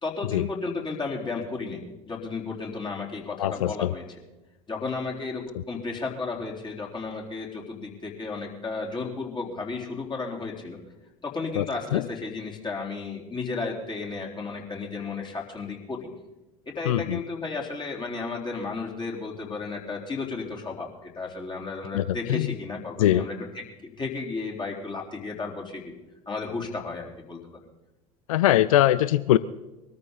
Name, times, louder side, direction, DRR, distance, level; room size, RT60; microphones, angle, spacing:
voice 1, 0.0-4.2 4.7-10.8 11.2-16.1 16.7-25.9 26.3-27.6, left 4 dB, 25° left, -1 dB, 3.9 m, -33 dB
voice 2, 3.4-3.9 11.6-11.7 11.9-12.0 16.9-17.2 21.9-22.0 22.3-22.5 23.0-23.2 28.3-29.4, left 13 dB, 65° left, 17 dB, 0.5 m, -21 dB
23.0 x 13.5 x 4.1 m, 1.0 s
figure-of-eight pair, 70°, 19 cm